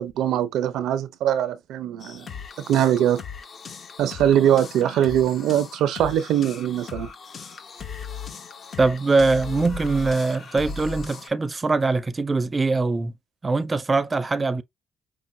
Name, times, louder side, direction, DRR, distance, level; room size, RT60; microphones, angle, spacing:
voice 1, 0.0-2.3 2.7-3.2 4.0-7.1, right 10 dB, 85° right, 0.5 m, -22 dB
sound 1, 2.0-11.3, left 5 dB, 50° left, 1.0 m, -38 dB
voice 2, 8.8-13.1 13.4-14.6, right 3 dB, 25° right, 0.5 m, -22 dB
5.3 x 2.1 x 2.6 m
cardioid pair, 90°, 0 cm